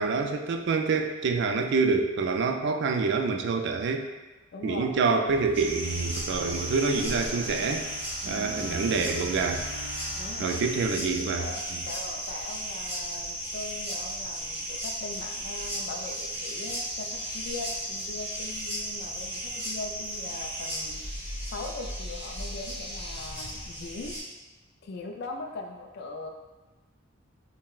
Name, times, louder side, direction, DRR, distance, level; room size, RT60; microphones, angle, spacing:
voice 1, 0.0-4.1 4.6-7.9 8.3-9.7 10.4-11.5, right 4 dB, 60° right, 5 dB, 0.3 m, -26 dB
voice 2, 4.5-4.9 8.2-8.5 10.2-10.6 11.4-21.3 21.5-24.2 24.8-26.3, left 3 dB, 55° left, 3 dB, 0.3 m, -40 dB
sound 1, 5.3-11.4, equal, 10° left, 0.9 m, -43 dB
sound 2, 5.5-24.2, equal, 10° right, 1.1 m, -35 dB
5.5 x 2.1 x 2.3 m, 1.1 s
head